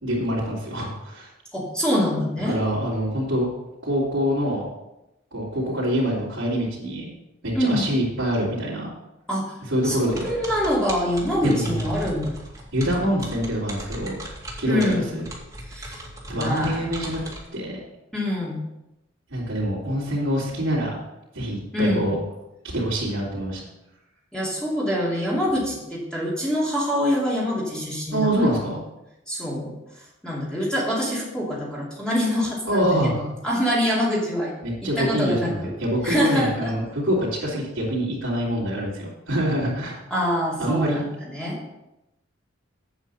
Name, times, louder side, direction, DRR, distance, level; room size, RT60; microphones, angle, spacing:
voice 1, 0.0-1.3 2.5-3.5 3.8-4.7 5.3-7.1 7.4-8.9 9.7-10.3 11.4-11.9 12.7-14.2 14.6-15.3 16.3-17.2 17.5-17.8 19.3-21.0 21.3-22.2 22.7-23.7 28.1-28.8 32.7-33.1 34.6-40.0 40.6-41.0, equal, 85° right, -10 dB, 3.1 m, -25 dB
voice 2, 1.5-2.6 7.5-7.8 9.3-9.5 9.8-12.3 14.6-15.1 15.7-16.0 16.3-16.9 18.1-18.6 21.7-22.0 24.3-28.7 29.3-29.7 30.2-34.5 35.0-35.7 36.0-36.7 40.1-41.6, equal, 5° left, -6 dB, 2.6 m, -25 dB
sound 1, 10.1-17.5, right 1 dB, 15° right, 2.4 m, -38 dB
8.3 x 8.3 x 5.6 m, 0.92 s
head